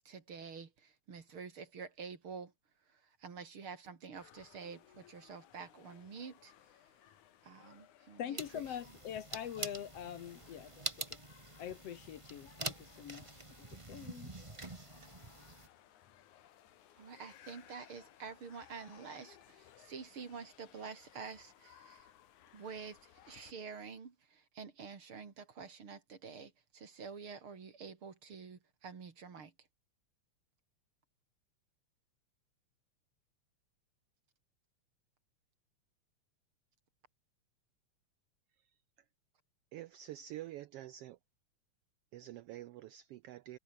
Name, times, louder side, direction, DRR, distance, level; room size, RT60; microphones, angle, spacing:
voice 1, 0.0-2.5 2.9-6.5 7.4-8.7 17.0-22.1 22.5-29.5, right 5 dB, 45° right, 3.3 m, -48 dB
sound 1, 4.2-23.5, left 11 dB, 90° left, 3.0 m, -62 dB
voice 2, 8.2-11.2 11.6-14.3, left 9 dB, 65° left, 2.1 m, -44 dB
sound 2, 8.4-15.7, right 3 dB, 25° right, 0.6 m, -46 dB
voice 3, 39.7-41.2 42.1-43.6, right 13 dB, 80° right, 1.4 m, -47 dB
omnidirectional pair, 3.3 m